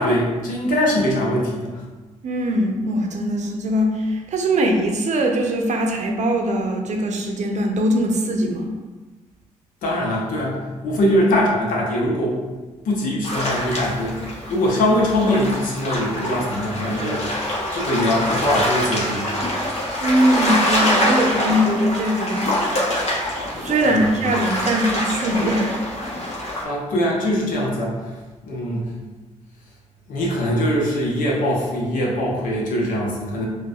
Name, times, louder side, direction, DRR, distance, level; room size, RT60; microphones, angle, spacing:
voice 1, 0.0-1.8 9.8-12.4 12.8-17.4 17.7-19.3 23.8-24.1 26.6-28.2 28.4-28.9 30.1-33.5, left 1 dB, 80° left, -3 dB, 0.8 m, -22 dB
voice 2, 2.2-8.7 20.0-22.6 23.6-25.8, right 1 dB, 60° right, 3 dB, 0.6 m, -21 dB
sound 1, 13.2-26.6, equal, 50° left, 1.1 m, -25 dB
4.8 x 2.3 x 2.3 m, 1.2 s
supercardioid pair, 55°, 14 cm